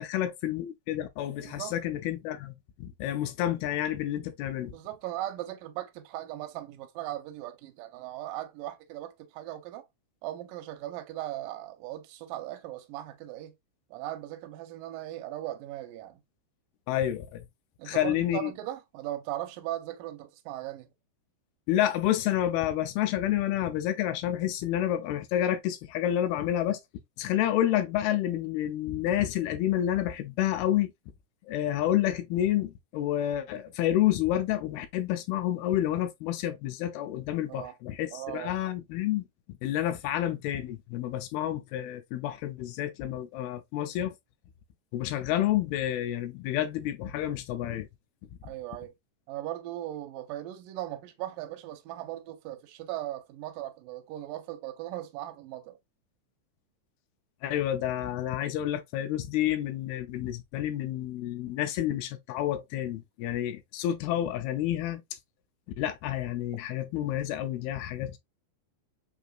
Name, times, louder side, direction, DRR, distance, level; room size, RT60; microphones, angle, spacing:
voice 1, 0.0-4.7 16.9-17.5 17.9-18.5 21.7-26.8 27.2-30.9 31.5-39.2 39.6-44.1 44.9-47.9 57.4-65.0 65.8-68.2, left 12 dB, 80° left, 2.4 m, -29 dB
voice 2, 1.4-1.8 4.7-9.9 10.2-13.5 13.9-16.2 17.8-20.9 37.5-37.7 38.1-38.6 48.4-48.9 49.3-55.8, right 14 dB, 80° right, 2.0 m, -38 dB
5.9 x 2.8 x 2.3 m
omnidirectional pair, 4.6 m